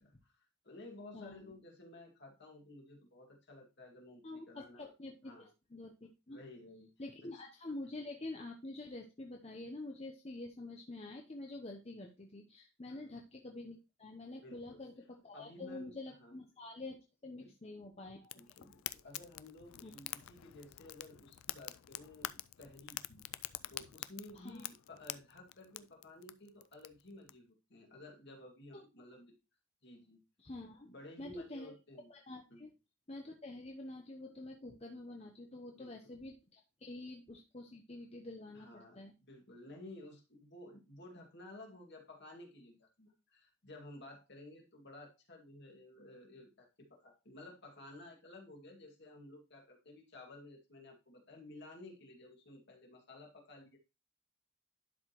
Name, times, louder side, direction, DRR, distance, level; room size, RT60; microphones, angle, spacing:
voice 1, 0.0-4.9 5.2-5.5 6.3-6.9 12.9-13.1 14.4-14.8 15.3-15.9 16.2-16.4 17.4-17.5 18.3-23.2 23.7-29.3 29.8-30.2 30.8-32.1 32.5-32.7 35.7-36.1 38.5-53.8, left 2 dB, 55° left, 1 dB, 2.1 m, -54 dB
voice 2, 1.1-1.5 4.2-6.4 7.0-18.6 19.8-19.9 24.3-24.7 28.7-28.8 30.4-30.9 31.2-31.7 32.1-32.7 33.1-39.1, left 2 dB, 30° left, 2 dB, 0.8 m, -47 dB
Fire, 18.2-27.3, left 14 dB, 80° left, 0.4 m, -47 dB
11.5 x 4.8 x 3.0 m, 0.27 s
head